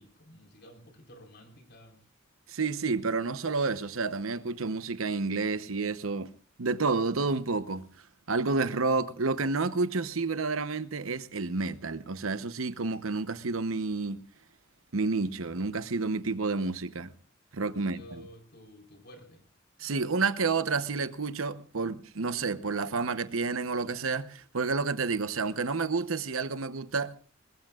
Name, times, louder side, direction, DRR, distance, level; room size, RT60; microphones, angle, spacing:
voice 1, 0.0-2.0 17.6-19.4, equal, 55° left, 4.4 m, -52 dB
voice 2, 2.5-6.3 6.6-7.9 8.3-14.2 14.9-17.1 17.5-18.3 19.8-27.2, right 4 dB, 85° right, 0.9 m, -30 dB
22.5 x 20.0 x 2.4 m
head